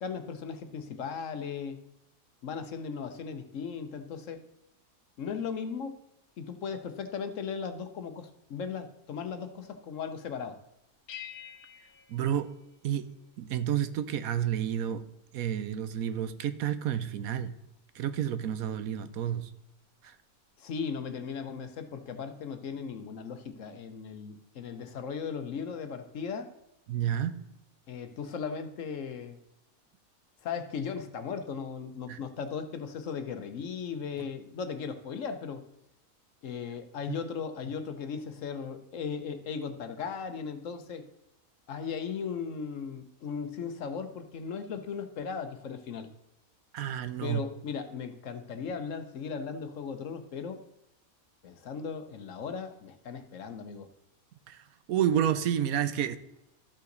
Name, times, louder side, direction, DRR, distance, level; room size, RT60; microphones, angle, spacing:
voice 1, 0.0-1.8 2.4-4.4 5.2-6.0 6.4-10.6 20.6-26.5 27.9-29.4 30.4-35.6 36.4-41.0 41.7-46.1 47.2-50.6 51.4-53.9, left 6 dB, 65° left, 9 dB, 1.1 m, -37 dB
sound 1, 11.1-13.3, left 9 dB, 80° left, 1.3 m, -47 dB
voice 2, 12.1-12.5 12.8-13.1 13.4-15.0 15.3-17.5 18.0-19.5 26.9-27.4 32.1-32.2 46.7-47.4 54.5-54.6 54.9-56.2, right 10 dB, 75° right, 12 dB, 1.1 m, -30 dB
13.0 x 5.6 x 3.9 m, 0.89 s
omnidirectional pair, 1.5 m